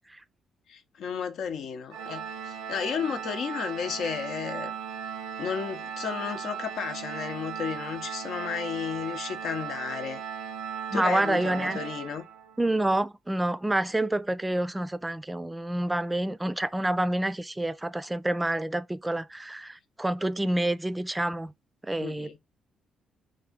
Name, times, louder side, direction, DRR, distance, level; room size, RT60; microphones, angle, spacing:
voice 1, 0.7-4.8 5.4-10.2 10.9-12.2 22.0-22.4, left 7 dB, 75° left, 0.7 m, -33 dB
Organ, 1.9-12.7, right 8 dB, 85° right, 0.8 m, -37 dB
voice 2, 10.9-11.8 12.6-21.5 21.8-22.4, right 1 dB, 15° right, 0.4 m, -28 dB
3.6 x 2.7 x 3.5 m
cardioid pair, 80°, 0 cm